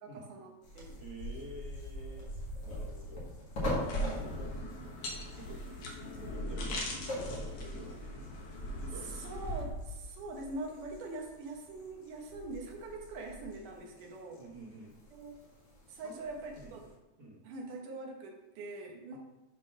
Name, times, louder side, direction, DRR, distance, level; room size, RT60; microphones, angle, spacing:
voice 1, 0.0-1.0 3.9-4.3 9.0-14.4 15.1-15.3 15.9-16.9 17.4-19.2, right 2 dB, 80° right, 1 dB, 2.5 m, -43 dB
sound 1, 0.6-16.9, equal, 50° left, 2.6 m, -42 dB
voice 2, 1.0-2.3 2.6-3.3 3.7-4.5 5.3-8.2 8.8-9.1 14.4-14.9 16.0-16.2 16.5-16.8 17.2-17.4 19.1-19.2, equal, 50° right, -4 dB, 1.1 m, -50 dB
sound 2, 3.8-9.6, left 1 dB, 75° left, 2.6 m, -42 dB
8.1 x 3.7 x 5.6 m, 1.0 s
omnidirectional pair, 3.6 m